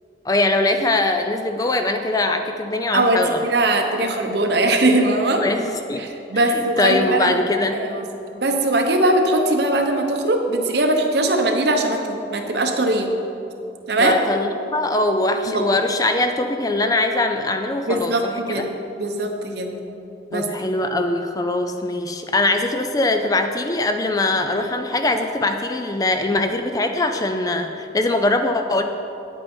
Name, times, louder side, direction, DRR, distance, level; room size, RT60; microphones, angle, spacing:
voice 1, 0.2-3.4 5.4-7.8 14.0-18.6 20.3-28.8, left 2 dB, 20° left, 6 dB, 0.4 m, -22 dB
voice 2, 2.9-5.4 6.0-8.0 8.4-13.1 13.9-14.2 15.5-15.7 17.9-18.7 19.0-19.7 20.3-20.8, right 1 dB, 60° right, 4 dB, 0.9 m, -20 dB
9.9 x 8.2 x 4.3 m, 2.8 s
head